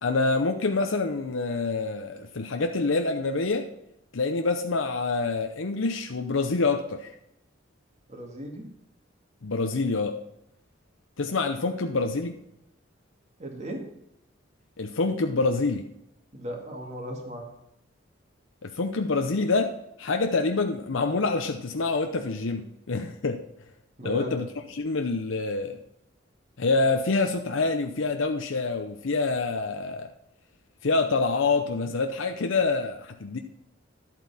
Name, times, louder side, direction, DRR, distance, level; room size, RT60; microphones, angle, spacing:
voice 1, 0.0-3.7 4.1-7.1 9.4-10.2 11.2-12.4 14.8-15.9 18.6-23.4 24.0-25.8 26.6-30.1 30.8-33.4, left 3 dB, 80° left, 5 dB, 0.8 m, -26 dB
voice 2, 8.1-8.6 13.4-13.8 16.3-17.5 24.0-24.3, equal, 35° right, 2 dB, 2.3 m, -36 dB
11.5 x 8.2 x 4.2 m, 0.83 s
head